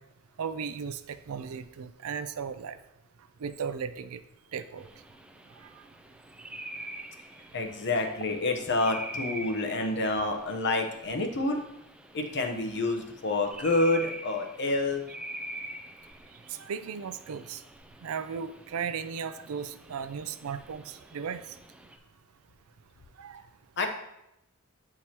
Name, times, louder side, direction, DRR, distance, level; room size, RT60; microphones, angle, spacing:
voice 1, 0.4-2.8 3.4-4.2 4.5-4.9 16.5-17.6 18.0-21.4 23.2-23.4, right 6 dB, 75° right, 11 dB, 0.4 m, -36 dB
sound 1, 4.8-22.0, right 1 dB, 5° right, 0.3 m, -45 dB
voice 2, 7.5-11.6 12.1-15.0 23.8-23.9, left 2 dB, 55° left, 4 dB, 0.8 m, -28 dB
8.6 x 4.7 x 2.9 m, 0.86 s
head